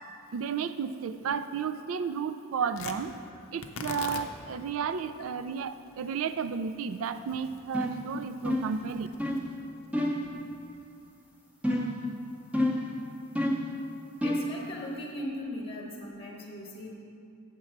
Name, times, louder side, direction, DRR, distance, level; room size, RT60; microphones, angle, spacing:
voice 1, 0.3-3.1 3.5-9.1, right 6 dB, 70° right, 12 dB, 0.3 m, -33 dB
Tearing, 2.7-11.1, left 5 dB, 65° left, 0.5 m, -46 dB
sound 1, 7.7-8.0 8.4-8.8 9.2-9.5 9.9-10.3 11.6-12.0 12.5-12.9 13.3-13.7 14.2-14.5, left 1 dB, 5° right, 0.7 m, -28 dB
voice 2, 14.2-16.9, left 1 dB, 25° left, -1 dB, 0.9 m, -39 dB
7.5 x 4.6 x 7.0 m, 2.6 s
head